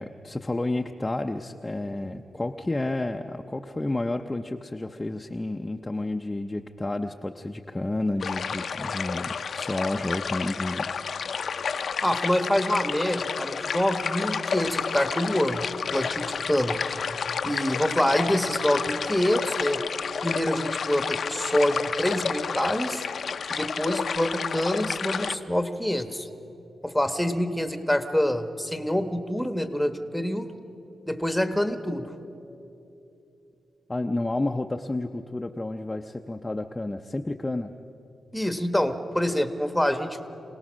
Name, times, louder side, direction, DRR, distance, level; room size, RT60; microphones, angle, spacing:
voice 1, 0.0-10.9 33.9-37.7, left 2 dB, 20° left, 4 dB, 0.6 m, -30 dB
sound 1, 8.2-25.3, left 6 dB, 65° left, 0.6 m, -30 dB
voice 2, 12.0-17.0 17.4-19.8 20.2-23.0 23.5-26.3 26.8-30.5 31.1-32.1 38.3-40.2, equal, ahead, 8 dB, 1.1 m, -26 dB
26.0 x 18.0 x 6.3 m, 2.9 s
cardioid pair, 100°, 0 cm